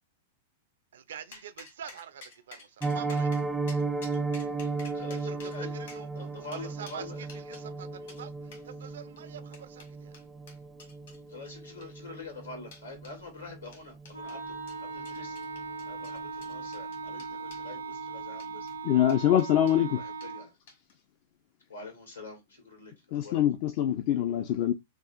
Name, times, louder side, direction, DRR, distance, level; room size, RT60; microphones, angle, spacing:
voice 1, 0.9-3.3 5.2-6.1 6.4-8.4 8.6-10.1, right 8 dB, 60° right, 0.5 m, -45 dB
sound 1, 1.3-7.7 8.1-8.2 8.5-8.7 9.2-11.2 11.7-12.1 12.7-13.2 13.7-14.4 14.7-17.7 18.3-18.8 19.1-19.8 20.2-20.3 20.7-21.0, left 4 dB, 60° left, 1.7 m, -51 dB
Piano, 2.8-13.7 14.0-14.2 14.5-14.7 15.0-15.3 15.6-15.7, right 3 dB, 10° right, 0.5 m, -35 dB
voice 2, 4.9-5.7 6.2-7.3 11.3-14.6 14.8-15.4 15.9-18.7 19.9-20.6 21.7-23.4, left 3 dB, 80° left, 2.0 m, -45 dB
Wind instrument woodwind instrument, 14.1-20.5, right 5 dB, 85° right, 0.9 m, -39 dB
voice 3, 18.8-20.0 23.1-24.7, left 11 dB, 45° left, 0.4 m, -24 dB
6.0 x 2.4 x 2.5 m
figure-of-eight pair, 95°, 0 cm